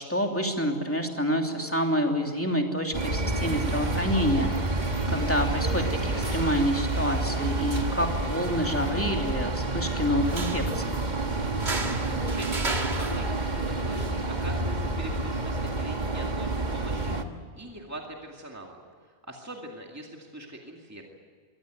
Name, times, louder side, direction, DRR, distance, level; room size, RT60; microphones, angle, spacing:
voice 1, 0.0-11.0, equal, 10° left, 2 dB, 2.9 m, -28 dB
sound 1, 2.9-17.2, right 2 dB, 45° right, 1.7 m, -29 dB
sound 2, 10.2-17.2, right 3 dB, 90° right, 2.4 m, -37 dB
voice 2, 12.1-18.8 19.1-21.0, right 1 dB, 15° right, 0 dB, 2.3 m, -42 dB
23.5 x 18.0 x 9.1 m, 2.1 s
omnidirectional pair, 1.1 m